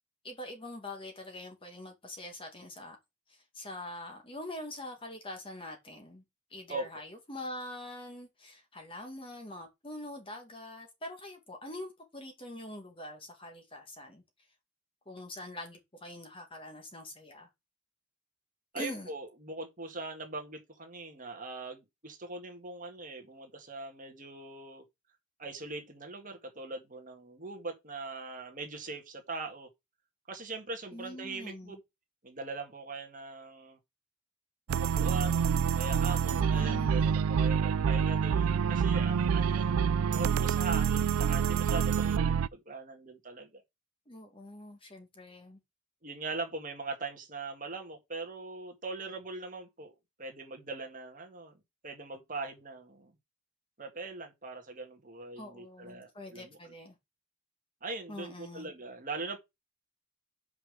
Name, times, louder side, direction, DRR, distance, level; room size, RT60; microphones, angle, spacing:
voice 1, 0.2-3.0 3.3-6.2 6.5-14.2 15.1-17.5 18.7-19.1 30.9-31.8 36.3-37.2 44.1-45.6 55.4-57.0 58.1-58.7, left 1 dB, 25° left, 2.0 m, -44 dB
voice 2, 18.7-24.8 25.4-29.7 30.3-31.8 32.2-33.8 34.7-43.6 46.0-49.9 50.2-51.5 51.8-53.1 53.8-56.7 57.8-59.4, right 3 dB, 35° right, 1.8 m, -41 dB
sound 1, 34.7-42.5, right 7 dB, 75° right, 0.4 m, -27 dB
5.8 x 5.2 x 6.5 m
head